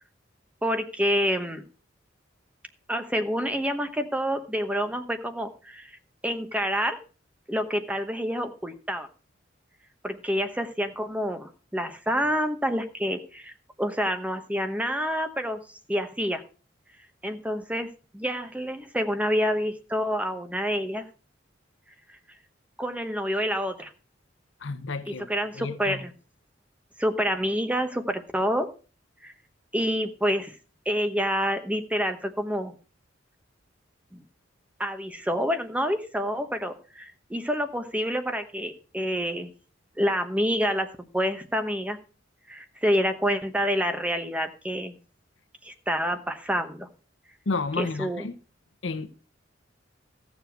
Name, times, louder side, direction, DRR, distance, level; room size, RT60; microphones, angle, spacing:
voice 1, 0.6-1.6 2.9-5.9 6.2-7.0 7.5-9.1 10.0-13.5 13.8-15.6 15.9-16.4 17.2-17.9 18.1-21.0 22.8-23.9 25.1-26.1 27.0-28.7 29.2-29.3 29.7-30.6 30.9-32.7 34.1-34.2 34.8-39.5 40.0-40.9 41.1-42.0 42.5-44.9 45.6-46.9 47.8-48.2, equal, 5° right, 1.0 m, -28 dB
voice 2, 24.6-25.3 25.5-26.0 47.5-48.4 48.8-49.1, left 3 dB, 70° left, 0.8 m, -31 dB
14.5 x 7.1 x 4.6 m
head